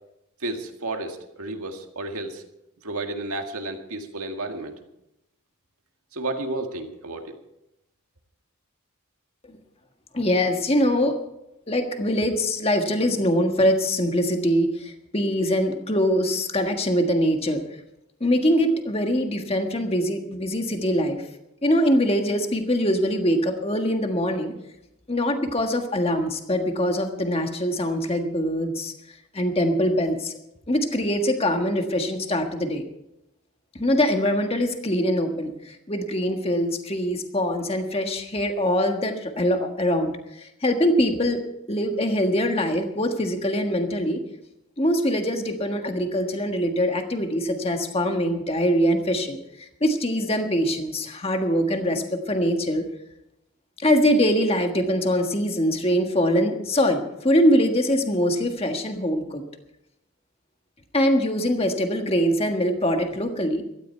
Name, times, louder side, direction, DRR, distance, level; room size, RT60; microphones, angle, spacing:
voice 1, 0.4-2.4 2.8-4.7 6.1-7.3, right 2 dB, 80° right, 4 dB, 2.0 m, -32 dB
voice 2, 10.1-11.1 11.7-17.6 18.2-21.2 21.6-24.5 25.1-28.9 29.3-30.3 30.7-32.8 33.8-40.1 40.6-41.4 41.7-44.2 44.8-49.4 49.8-52.8 53.8-59.4 60.9-63.6, equal, 25° left, 5 dB, 1.5 m, -23 dB
16.5 x 13.0 x 4.6 m, 0.85 s
head